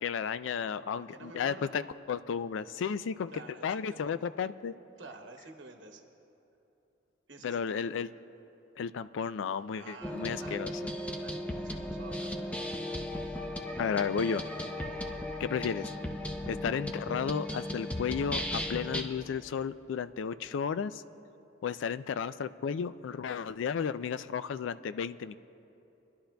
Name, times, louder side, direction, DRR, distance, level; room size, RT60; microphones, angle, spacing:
voice 1, 0.0-1.8 2.1-3.3 3.6-4.7 7.4-8.1 8.8-10.7 13.8-14.4 15.4-15.9 16.5-21.0 21.6-25.4, left 6 dB, 85° left, 14 dB, 0.3 m, -33 dB
voice 2, 0.9-1.8 3.3-4.1 5.0-6.0 7.3-8.1 9.8-10.9 11.1-12.6, right 3 dB, 80° right, 4 dB, 1.0 m, -50 dB
sound 1, 10.0-19.0, left 1 dB, 5° left, 0.6 m, -36 dB
27.5 x 11.5 x 2.3 m, 2.9 s
head